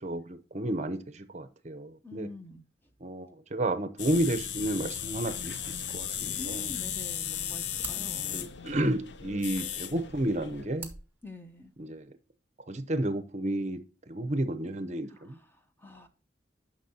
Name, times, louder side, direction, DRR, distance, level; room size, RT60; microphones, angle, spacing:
voice 1, 0.0-2.3 3.0-6.7 8.3-10.9 11.8-12.2 12.7-13.8 14.1-15.4, right 1 dB, 40° right, 0.7 m, -32 dB
voice 2, 2.0-2.6 6.4-8.5 11.2-11.7 15.1-16.1, left 1 dB, 10° left, 0.8 m, -46 dB
sound 1, 4.0-10.7, left 9 dB, 75° left, 0.5 m, -36 dB
sound 2, 9.9-12.0, right 5 dB, 10° right, 1.1 m, -49 dB
10.0 x 6.0 x 2.8 m
head